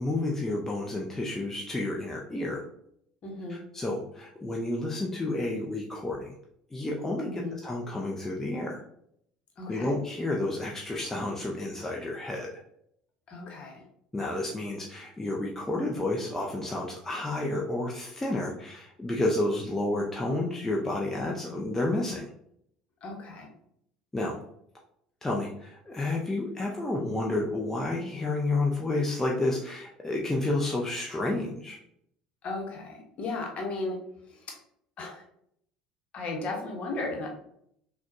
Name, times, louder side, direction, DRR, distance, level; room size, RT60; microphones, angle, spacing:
voice 1, 0.0-2.6 3.5-6.3 6.7-8.8 9.7-12.5 14.1-22.3 24.1-24.4 25.2-31.8, left 2 dB, 10° left, -2 dB, 0.6 m, -30 dB
voice 2, 3.2-3.6 7.2-7.6 9.6-9.9 13.3-13.9 23.0-23.5 32.4-34.0 34.3-34.6 35.0-35.2 36.1-37.3, left 3 dB, 40° left, 1 dB, 1.1 m, -35 dB
6.0 x 2.3 x 2.6 m, 0.71 s
figure-of-eight pair, 65°, 3 cm